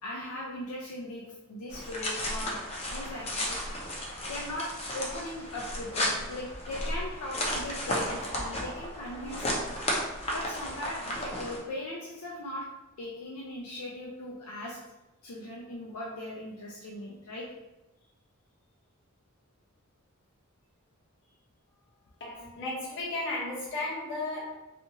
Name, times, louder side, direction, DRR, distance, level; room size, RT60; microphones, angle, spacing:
voice 1, 0.0-1.2 1.5-2.6 2.9-3.6 4.3-9.7 10.3-12.7 13.0-14.8 15.2-17.5, left 1 dB, 80° left, -3 dB, 0.4 m, -39 dB
sound 1, 1.7-11.6, left 1 dB, 30° left, 0.5 m, -34 dB
voice 2, 22.2-24.6, left 2 dB, 55° left, -4 dB, 0.9 m, -34 dB
2.5 x 2.4 x 2.8 m, 0.99 s
head